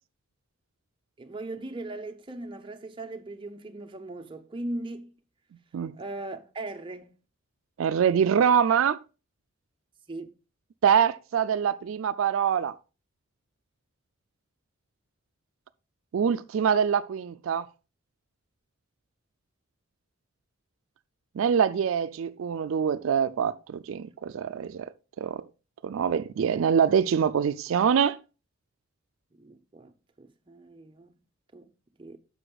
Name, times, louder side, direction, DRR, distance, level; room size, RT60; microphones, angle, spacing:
voice 1, 1.2-5.1 6.0-7.1 10.1-10.3 29.3-31.2 31.5-31.7 32.0-32.2, right 2 dB, 25° right, 0.6 m, -39 dB
voice 2, 7.8-9.0 10.8-12.7 16.1-17.7 21.4-24.9 25.2-25.4 25.8-28.2, right 7 dB, 70° right, 0.3 m, -24 dB
9.9 x 6.8 x 2.3 m
head